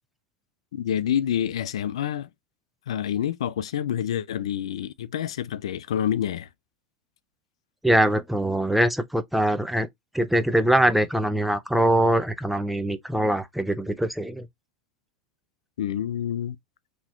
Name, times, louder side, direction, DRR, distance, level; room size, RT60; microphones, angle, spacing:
voice 1, 0.7-2.3 2.9-6.5 15.8-16.6, left 10 dB, 85° left, 0.3 m, -27 dB
voice 2, 7.8-9.9 10.1-14.5, right 1 dB, 5° right, 0.5 m, -23 dB
3.9 x 3.0 x 2.5 m
hypercardioid pair, 105°, 3 cm